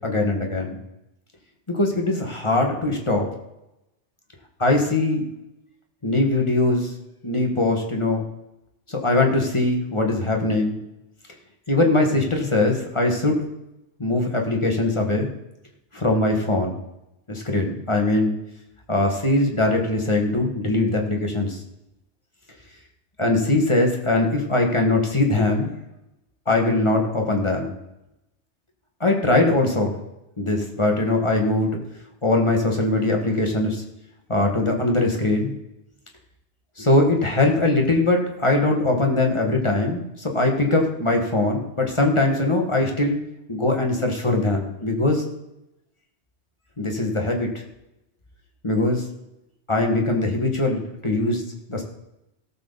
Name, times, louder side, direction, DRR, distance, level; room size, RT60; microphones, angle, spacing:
voice 1, 0.0-0.8 1.7-3.3 4.6-5.2 6.0-6.9 7.2-8.2 8.9-10.8 11.7-13.4 14.0-15.3 15.9-16.8 17.3-18.4 18.9-21.6 23.2-25.7 26.5-27.7 29.0-30.0 30.4-31.8 32.2-33.8 34.3-35.5 36.8-43.2 43.5-45.2 46.8-47.5 48.6-49.1 49.7-51.4 51.7-51.8, left 2 dB, 25° left, 1 dB, 1.9 m, -21 dB
17.0 x 7.4 x 4.1 m, 0.90 s
omnidirectional pair, 1.2 m